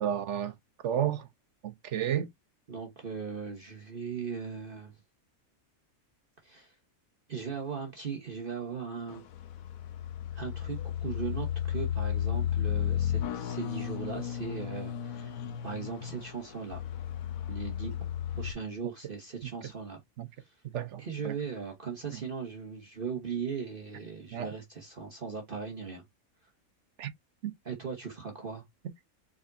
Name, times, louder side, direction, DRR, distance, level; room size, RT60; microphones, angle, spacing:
voice 1, 0.0-0.5 0.8-1.3 1.6-2.3 19.4-19.5 20.2-20.3 20.7-21.3 24.3-24.5 27.0-27.1 27.4-27.5, right 10 dB, 60° right, 1.0 m, -31 dB
voice 2, 2.7-4.9 6.4-6.7 7.3-9.2 10.3-16.8 17.5-18.0 18.4-20.0 20.4-20.6 21.0-26.0 27.6-28.6, right 5 dB, 40° right, 1.2 m, -38 dB
sound 1, 9.1-18.5, left 10 dB, 80° left, 1.2 m, -33 dB
4.8 x 4.2 x 2.6 m
omnidirectional pair, 1.4 m